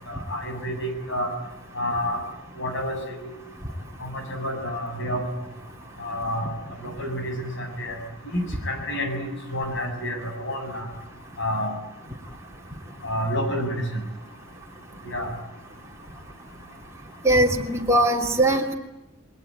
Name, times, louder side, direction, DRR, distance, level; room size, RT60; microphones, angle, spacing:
voice 1, 0.1-1.3 1.8-2.2 2.6-3.3 4.0-5.2 6.0-6.5 6.8-8.0 8.3-10.9 11.4-11.7 13.0-14.0 15.0-15.3, equal, 60° left, 5 dB, 7.3 m, -29 dB
voice 2, 17.2-18.7, right 1 dB, 15° right, -2 dB, 3.1 m, -20 dB
28.5 x 21.0 x 9.9 m, 0.96 s
head